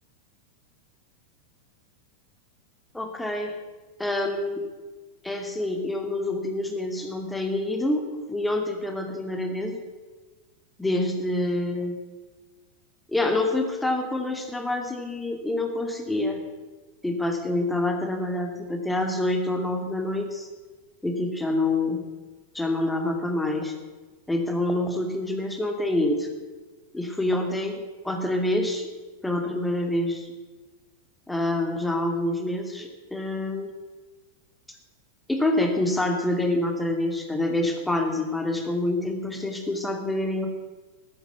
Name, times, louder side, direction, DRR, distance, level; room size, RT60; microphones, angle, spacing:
voice 1, 2.9-3.5 4.0-4.6 5.2-9.8 10.8-12.0 13.1-16.4 17.0-20.5 21.0-22.0 22.5-23.7 24.3-26.3 26.9-28.9 29.2-30.3 31.3-33.7 35.3-40.5, left 1 dB, 5° left, 3 dB, 2.6 m, -27 dB
14.0 x 12.5 x 8.2 m, 1.3 s
figure-of-eight pair, 90°, 0 cm